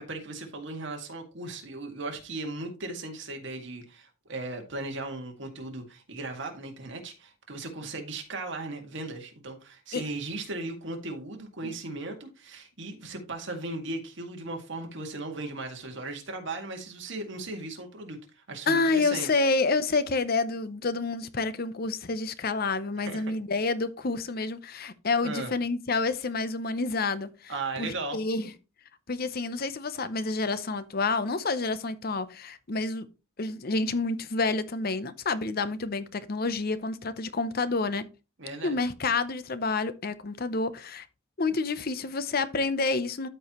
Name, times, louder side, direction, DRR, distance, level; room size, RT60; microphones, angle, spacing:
voice 1, 0.0-19.3 23.1-23.3 25.2-25.5 27.5-28.2 38.4-38.8, right 2 dB, 60° right, 2.0 m, -37 dB
voice 2, 18.7-27.5 27.8-28.5 29.1-33.1 33.4-38.1 38.6-41.1 41.4-43.3, left 3 dB, 45° left, 0.7 m, -28 dB
13.5 x 4.7 x 3.0 m
head